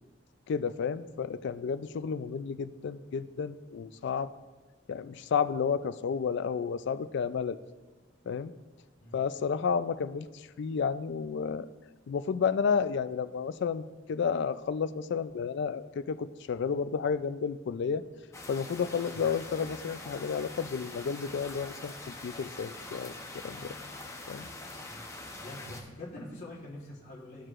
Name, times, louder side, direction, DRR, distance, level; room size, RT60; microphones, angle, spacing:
voice 1, 0.5-4.3 4.9-7.6 8.3-8.5 9.1-10.3 10.6-11.7 12.1-18.0 18.5-21.9 22.2-23.1 23.4-23.7 24.3-24.5, left 6 dB, 65° left, 14 dB, 0.3 m, -31 dB
sound 1, 18.3-25.8, left 2 dB, 15° left, 0.7 m, -44 dB
voice 2, 25.4-27.5, left 1 dB, 40° left, -7 dB, 1.4 m, -44 dB
14.0 x 4.6 x 2.5 m, 1.2 s
head